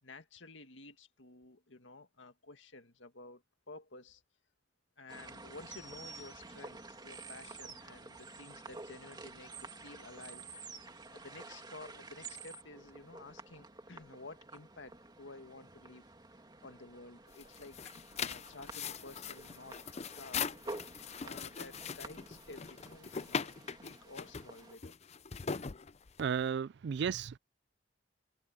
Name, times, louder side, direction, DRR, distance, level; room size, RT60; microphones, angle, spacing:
voice 1, 0.0-4.2 5.0-10.6 11.1-16.1 16.6-20.4 21.2-24.9, left 3 dB, 90° left, 2.0 m, -53 dB
sound 1, 5.1-24.8, right 3 dB, 25° right, 2.4 m, -50 dB
sound 2, 17.3-26.4, left 6 dB, 35° left, 0.6 m, -41 dB
voice 2, 26.2-27.4, right 7 dB, 65° right, 0.4 m, -34 dB
head